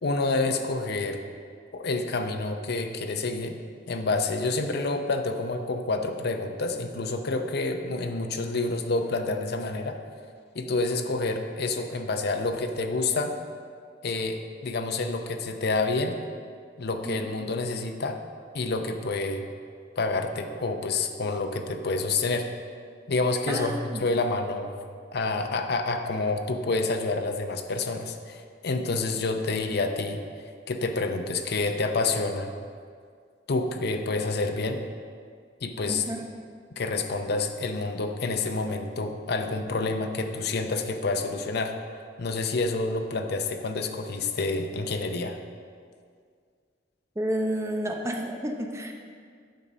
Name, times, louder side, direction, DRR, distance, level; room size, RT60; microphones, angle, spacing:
voice 1, 0.0-1.2 1.7-3.6 3.9-10.0 10.5-13.3 14.0-16.2 16.8-18.2 18.5-19.5 20.0-22.5 23.1-24.7 25.1-30.2 30.7-32.5 33.5-34.8 35.6-36.0 36.8-41.8 42.2-45.4, left 3 dB, 60° left, 6 dB, 0.6 m, -28 dB
voice 2, 23.5-24.1 35.9-36.2 47.2-48.9, equal, 15° right, 1 dB, 0.7 m, -31 dB
9.0 x 4.1 x 6.1 m, 2.1 s
head